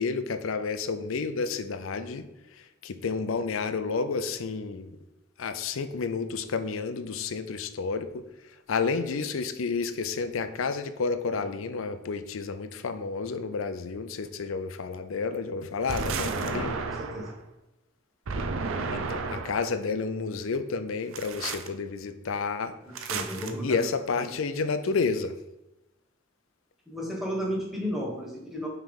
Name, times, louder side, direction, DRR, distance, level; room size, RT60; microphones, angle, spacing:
voice 1, 0.0-2.3 2.8-4.9 5.4-8.2 8.7-16.8 18.9-22.7 23.6-25.3, left 4 dB, 75° left, 10 dB, 0.5 m, -30 dB
sound 1, 15.9-17.4 18.3-19.7 21.1-21.7 22.9-23.5, right 4 dB, 80° right, 0.6 m, -32 dB
voice 2, 17.0-17.3 22.9-23.8 24.2-24.3 26.9-28.7, equal, ahead, -3 dB, 1.4 m, -33 dB
5.8 x 3.3 x 5.2 m, 0.97 s
head